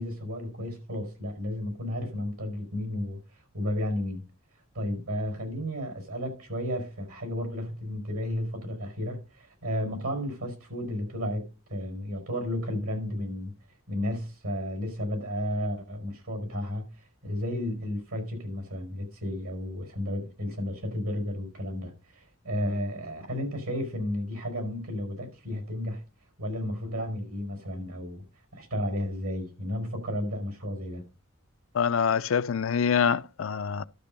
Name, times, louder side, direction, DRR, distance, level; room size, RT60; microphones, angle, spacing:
voice 1, 0.0-3.2 3.5-4.2 4.7-11.4 11.7-13.5 13.9-16.9 17.2-26.0 26.4-28.2 28.5-31.0, left 1 dB, 90° right, 5.0 m, -33 dB
voice 2, 31.7-33.8, left 6 dB, 65° left, 0.5 m, -25 dB
12.0 x 6.1 x 5.3 m
head